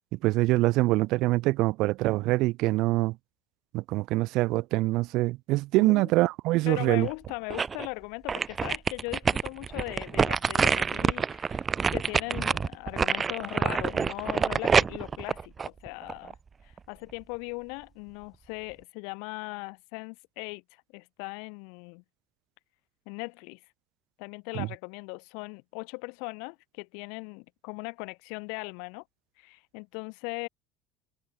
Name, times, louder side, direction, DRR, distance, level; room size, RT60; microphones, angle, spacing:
voice 1, 0.1-3.2 3.7-7.1 24.5-24.7, right 19 dB, 50° right, 0.3 m, -24 dB
voice 2, 6.7-11.6 11.9-16.4 16.6-20.6 20.9-22.0 23.1-23.6 24.2-29.0 29.4-30.5, left 39 dB, 70° left, 5.4 m, -39 dB
sound 1, 7.0-7.9 8.3-16.3 16.8-16.9, right 5 dB, 15° right, 1.4 m, -27 dB
cardioid pair, 175°, 0 cm